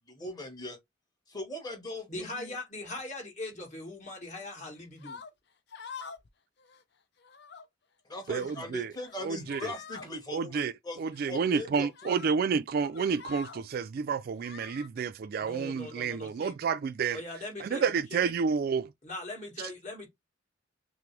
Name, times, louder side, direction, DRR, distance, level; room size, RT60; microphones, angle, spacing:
voice 1, 0.1-0.8 1.3-2.5 8.0-11.0 11.3-12.2, left 1 dB, 20° left, 1.5 m, -40 dB
voice 2, 2.1-5.2 15.4-16.5 17.1-18.3 19.0-20.1, left 2 dB, 40° left, 1.8 m, -40 dB
sound 1, 5.0-5.3 5.7-6.3 6.6-6.8 7.2-7.6 8.2-8.6 9.0-9.2 9.5-10.1 11.1-11.3 11.9-12.3 12.7-13.6 14.4-14.9, left 5 dB, 65° left, 0.6 m, -46 dB
voice 3, 8.3-8.9 9.2-9.6 10.3-10.7 11.0-17.2 17.6-18.9, right 6 dB, 50° right, 0.3 m, -30 dB
5.8 x 2.0 x 3.3 m
head